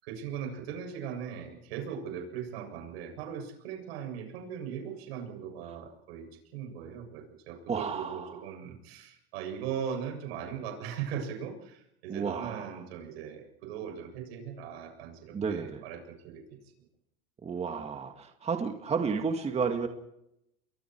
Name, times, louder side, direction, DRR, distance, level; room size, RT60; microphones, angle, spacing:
voice 1, 0.0-6.3 6.5-16.6, right 8 dB, 85° right, 4 dB, 7.4 m, -39 dB
voice 2, 7.7-8.3 12.1-12.7 15.3-15.8 17.4-19.9, right 5 dB, 20° right, 5 dB, 2.0 m, -32 dB
30.0 x 22.5 x 4.7 m, 0.80 s
supercardioid pair, 140°, 30 cm